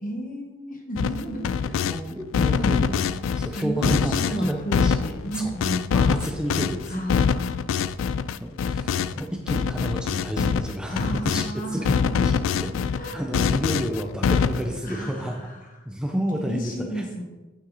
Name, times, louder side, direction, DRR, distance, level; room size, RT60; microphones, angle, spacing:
voice 1, 0.0-1.8 2.3-2.8 3.5-5.9 6.9-7.6 10.9-13.2 14.8-15.6 16.4-17.2, right 1 dB, 45° left, 2 dB, 1.4 m, -33 dB
sound 1, 1.0-2.0 2.3-11.5 11.8-14.8, left 6 dB, 75° left, 0.3 m, -24 dB
voice 2, 1.7-4.9 5.3-5.5 5.9-7.1 8.4-15.5 15.9-17.0, equal, 5° right, 2 dB, 0.6 m, -30 dB
8.3 x 5.8 x 3.9 m, 1.1 s
head